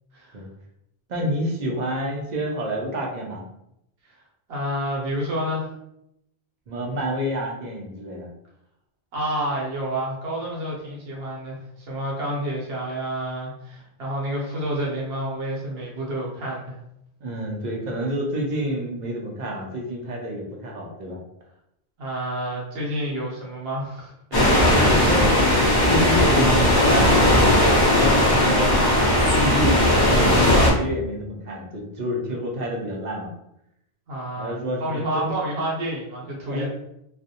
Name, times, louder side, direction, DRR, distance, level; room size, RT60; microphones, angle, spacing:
voice 1, 1.1-3.4 6.7-8.3 17.2-21.2 24.7-33.3 34.4-35.3 36.5-36.7, equal, 55° right, 0 dB, 0.5 m, -28 dB
voice 2, 4.5-5.7 9.1-16.8 22.0-24.7 32.3-32.4 34.1-36.7, right 1 dB, 75° right, -4 dB, 0.9 m, -29 dB
sound 1, 24.3-30.7, left 1 dB, 25° left, 0.6 m, -17 dB
2.3 x 2.0 x 2.7 m, 0.80 s
omnidirectional pair, 1.1 m